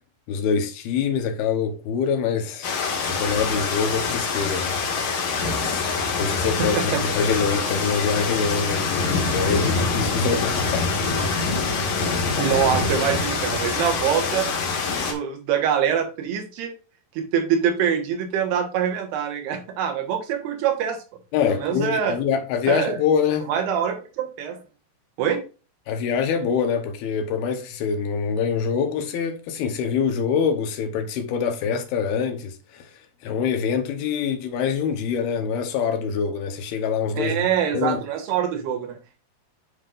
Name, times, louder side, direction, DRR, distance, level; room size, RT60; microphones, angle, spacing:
voice 1, 0.3-2.7 3.0-4.8 5.1-5.8 6.2-11.0 21.3-23.5 25.9-32.9 33.2-37.4 37.7-38.0, left 6 dB, 75° left, 2.9 m, -25 dB
sound 1, 2.6-15.1, left 4 dB, 55° left, 2.7 m, -25 dB
voice 2, 6.6-7.0 12.4-14.5 15.0-16.7 17.2-21.0 21.5-22.2 22.7-23.0 23.5-24.6 25.2-25.4 37.1-39.2, right 8 dB, 80° right, 3.4 m, -24 dB
9.8 x 5.5 x 2.5 m
omnidirectional pair, 4.6 m